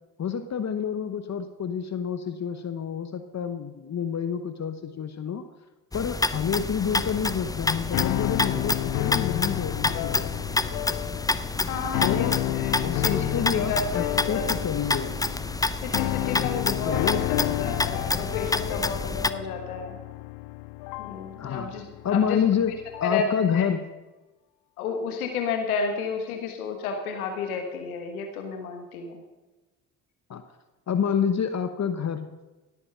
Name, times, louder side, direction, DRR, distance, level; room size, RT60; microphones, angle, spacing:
voice 1, 0.2-5.4 5.9-10.4 12.0-15.2 16.4-17.7 21.4-21.7 22.0-22.7 23.0-23.8 30.3-30.4 30.9-32.3, left 7 dB, 40° left, 9 dB, 1.1 m, -28 dB
sound 1, 5.9-19.3, left 2 dB, 10° left, 0.6 m, -29 dB
sound 2, 7.0-23.3, left 20 dB, 65° left, 0.5 m, -31 dB
voice 2, 11.6-14.5 15.8-20.0 21.0-22.4 23.0-23.7 24.8-29.2, left 5 dB, 85° left, 5 dB, 1.5 m, -32 dB
17.0 x 8.6 x 5.7 m, 1.1 s
hypercardioid pair, 50°, 43 cm